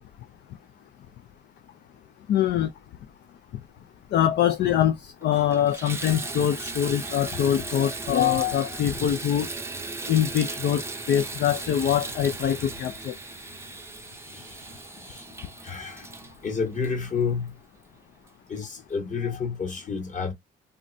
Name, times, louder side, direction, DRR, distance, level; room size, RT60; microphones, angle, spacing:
voice 1, 2.3-2.7 4.1-9.5 10.1-10.8 11.1-13.1, left 10 dB, 60° left, 0.4 m, -23 dB
Water tap faucet / Bathtub (filling or washing), 4.6-4.7 5.2-17.6 18.3-18.4 18.9-19.0, right 3 dB, 15° right, 0.6 m, -37 dB
voice 2, 15.6-16.1 16.4-17.6 18.5-20.3, left 5 dB, 40° left, 1.2 m, -30 dB
3.7 x 2.1 x 2.6 m
cardioid pair, 90°, 20 cm